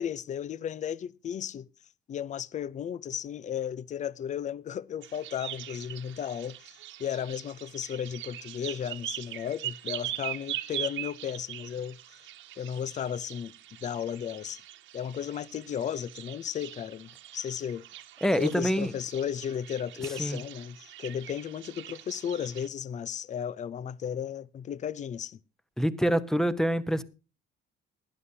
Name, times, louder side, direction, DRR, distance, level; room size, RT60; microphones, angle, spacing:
voice 1, 0.0-1.7 2.1-12.0 12.6-13.5 13.8-14.6 14.9-17.8 18.4-25.4, left 9 dB, 40° left, 0.6 m, -34 dB
sound 1, 5.0-22.7, right 13 dB, 75° right, 1.4 m, -42 dB
voice 2, 18.2-18.9 20.2-20.4 25.8-27.0, equal, ahead, 0.9 m, -26 dB
19.0 x 11.0 x 2.7 m
cardioid pair, 135°, 20 cm